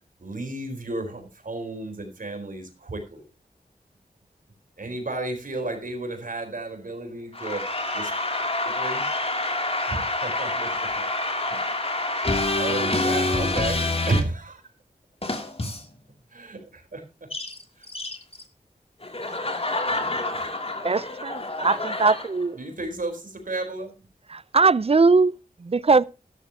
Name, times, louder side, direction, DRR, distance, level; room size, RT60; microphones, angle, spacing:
voice 1, 0.2-3.3 4.8-7.7 7.9-8.1 8.6-9.1 9.9-10.7 11.5-11.6 12.5-14.6 16.3-17.3 19.9-20.0 22.5-23.9, right 2 dB, 65° right, 4.2 m, -32 dB
voice 2, 7.3-14.2 15.2-15.9 17.3-17.6 17.9-18.2 19.0-22.3, left 2 dB, 40° left, 2.9 m, -27 dB
voice 3, 20.8-22.6 24.3-26.0, right 4 dB, 40° right, 0.6 m, -21 dB
13.5 x 12.5 x 2.9 m
wide cardioid pair, 65°, 15 cm